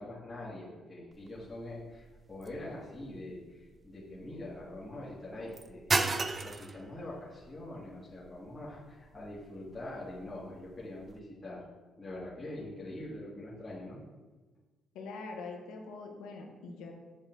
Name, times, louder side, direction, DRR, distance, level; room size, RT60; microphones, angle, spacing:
voice 1, 0.0-11.7 12.0-14.0, left 1 dB, 25° left, -9 dB, 2.3 m, -44 dB
sound 1, 1.1-11.2, right 3 dB, 30° right, 0.5 m, -39 dB
voice 2, 14.9-16.9, left 3 dB, 85° left, 2 dB, 1.3 m, -43 dB
7.6 x 6.5 x 4.0 m, 1.3 s
cardioid pair, 90°, 0 cm